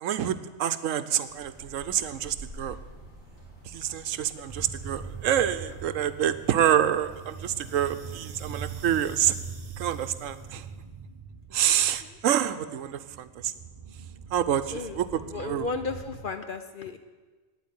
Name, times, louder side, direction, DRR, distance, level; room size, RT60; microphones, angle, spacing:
voice 1, 0.0-2.8 3.6-9.3 9.8-10.7 11.5-13.5 14.3-15.7, right 10 dB, 75° right, 12 dB, 1.0 m, -27 dB
sound 1, 1.3-9.1, right 1 dB, 70° left, 3.7 m, -49 dB
sound 2, 4.5-16.2, right 5 dB, 40° right, 0.5 m, -42 dB
voice 2, 14.7-17.0, left 4 dB, 50° left, 8 dB, 0.7 m, -35 dB
9.4 x 8.4 x 9.4 m, 1.3 s
omnidirectional pair, 1.4 m